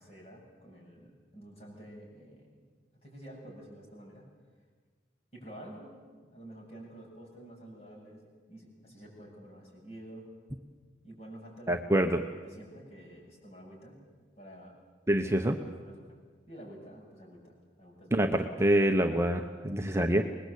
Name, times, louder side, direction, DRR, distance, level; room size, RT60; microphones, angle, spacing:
voice 1, 0.0-2.6 3.0-4.2 5.3-5.9 6.3-8.2 8.5-10.3 11.0-12.1 12.4-14.0 14.4-14.7 15.2-15.5 15.8-16.2 16.5-18.3, right 1 dB, 35° left, -1 dB, 7.8 m, -49 dB
voice 2, 11.7-12.2 15.1-15.6 18.1-20.2, right 1 dB, 15° right, 4 dB, 0.9 m, -26 dB
25.0 x 20.5 x 8.4 m, 1.5 s
head